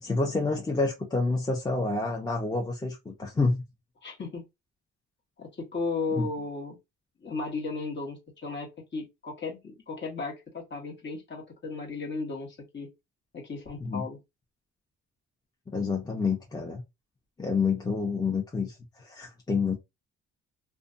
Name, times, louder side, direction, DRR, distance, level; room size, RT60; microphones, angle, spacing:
voice 1, 0.0-3.6 6.2-6.3 13.8-14.0 15.7-16.8 17.4-19.8, left 4 dB, 15° left, 0.7 m, -28 dB
voice 2, 4.0-4.4 5.4-6.8 7.2-12.9 13.3-14.2, left 3 dB, 35° left, 1.2 m, -35 dB
2.5 x 2.2 x 2.5 m
cardioid pair, 90°, 30 cm